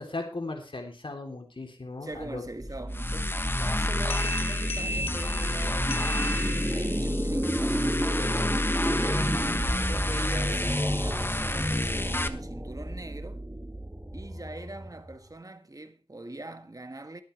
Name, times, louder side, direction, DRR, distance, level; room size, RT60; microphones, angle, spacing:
voice 1, 0.0-2.4, left 2 dB, 60° left, 3.5 m, -37 dB
voice 2, 2.0-7.9 8.8-9.5 9.8-13.4 14.1-17.2, right 2 dB, 35° right, 1.7 m, -42 dB
sound 1, 2.1-15.3, right 1 dB, 20° right, 2.1 m, -34 dB
sound 2, 2.9-12.3, left 1 dB, 25° left, 1.3 m, -29 dB
sound 3, 4.1-7.0, equal, 85° left, 1.0 m, -36 dB
22.5 x 8.8 x 3.4 m
wide cardioid pair, 55°, 10 cm